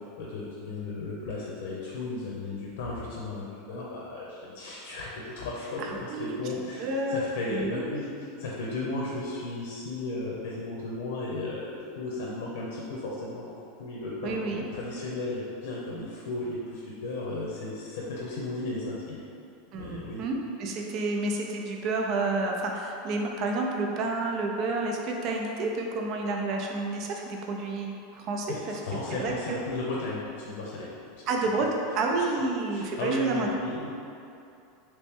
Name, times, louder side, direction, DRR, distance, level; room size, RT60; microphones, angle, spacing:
voice 1, 0.2-5.1 5.3-19.2 19.7-20.2 28.5-31.2 32.7-33.9, left 2 dB, 80° left, -4 dB, 0.7 m, -35 dB
voice 2, 5.9-6.4 6.8-7.2 7.5-8.0 14.2-14.6 19.7-28.5 29.1-29.6 31.3-31.7 32.0-33.5, right 3 dB, 40° right, 1 dB, 0.4 m, -30 dB
3.0 x 3.0 x 3.5 m, 2.6 s
supercardioid pair, 145°, 0 cm